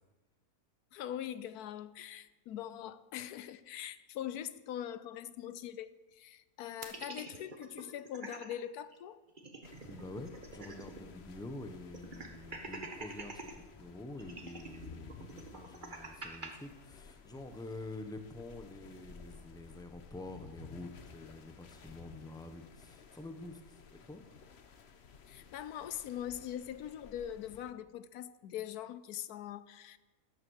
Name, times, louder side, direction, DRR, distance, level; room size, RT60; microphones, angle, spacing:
voice 1, 0.9-9.2 25.3-30.0, left 10 dB, 90° left, 1.2 m, -42 dB
sound 1, 6.8-8.5 8.9-9.0 9.3-11.1 11.3-11.4 11.9-13.5 14.2-16.5, right 3 dB, 35° right, 1.5 m, -46 dB
sound 2, 9.6-27.7, left 6 dB, 50° left, 1.1 m, -55 dB
voice 2, 9.8-24.2, left 2 dB, 5° left, 1.0 m, -47 dB
13.0 x 12.0 x 6.5 m
omnidirectional pair, 1.6 m